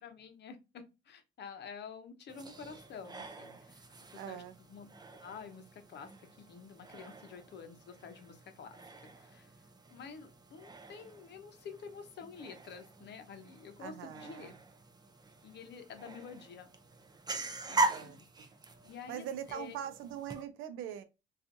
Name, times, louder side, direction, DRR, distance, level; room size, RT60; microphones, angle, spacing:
voice 1, 0.0-4.4 4.7-4.9 5.2-8.8 9.1-14.5 15.4-16.7 17.7-18.2 18.8-19.8, left 6 dB, 60° left, 0.6 m, -49 dB
sound 1, 2.3-20.4, right 2 dB, 20° right, 0.4 m, -42 dB
voice 2, 4.1-4.6 13.8-14.6 17.9-18.5 19.1-21.0, right 9 dB, 90° right, 0.5 m, -42 dB
2.5 x 2.4 x 2.5 m
cardioid pair, 90°, 20 cm